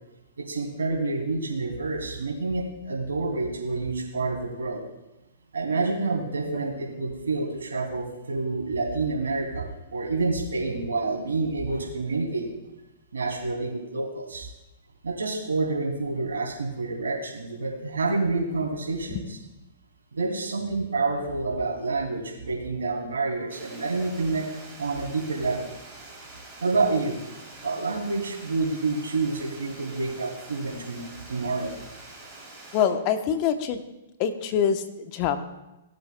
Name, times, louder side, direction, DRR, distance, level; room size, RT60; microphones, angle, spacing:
voice 1, 0.4-4.8 5.5-12.4 13.1-14.5 15.0-19.2 20.1-24.5 24.8-25.7 26.6-27.2 27.6-31.7, right 3 dB, 90° right, -1 dB, 2.6 m, -28 dB
Water, 23.5-32.9, right 2 dB, 15° right, 3.1 m, -46 dB
voice 2, 32.7-33.8 34.2-35.4, left 8 dB, 40° left, 9 dB, 0.8 m, -25 dB
17.5 x 7.9 x 2.2 m, 0.98 s
hypercardioid pair, 125°, 0 cm